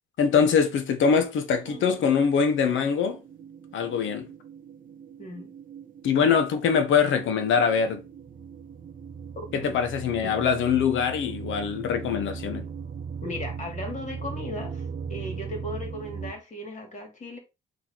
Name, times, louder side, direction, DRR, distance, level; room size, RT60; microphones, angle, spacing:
voice 1, 0.2-3.2 3.7-4.3 6.0-8.0 9.5-12.7, left 6 dB, 75° left, 0.9 m, -23 dB
sound 1, 1.6-16.3, right 6 dB, 45° right, 0.7 m, -39 dB
voice 2, 5.2-5.5 9.4-9.8 13.2-17.4, left 1 dB, 40° left, 2.2 m, -37 dB
3.9 x 2.9 x 4.4 m
cardioid pair, 90°, 20 cm